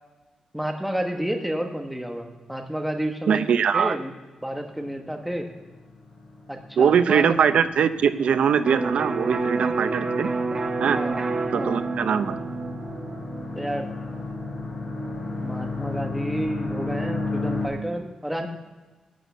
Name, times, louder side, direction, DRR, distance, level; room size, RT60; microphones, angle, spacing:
voice 1, 0.5-3.5 3.7-4.1 4.4-5.5 6.5-7.2 11.0-11.2 11.5-11.8 13.5-13.9 15.4-18.5, equal, 5° right, 3 dB, 1.1 m, -30 dB
voice 2, 3.3-4.0 6.8-10.3 10.8-11.0 11.5-12.4, right 7 dB, 85° right, 12 dB, 0.7 m, -21 dB
sound 1, 4.7-17.7, left 3 dB, 55° left, 5.5 m, -34 dB
Electric guitar, 8.7-16.3, right 3 dB, 40° right, 1.2 m, -30 dB
11.5 x 8.3 x 8.2 m, 1.2 s
wide cardioid pair, 140°, 2 cm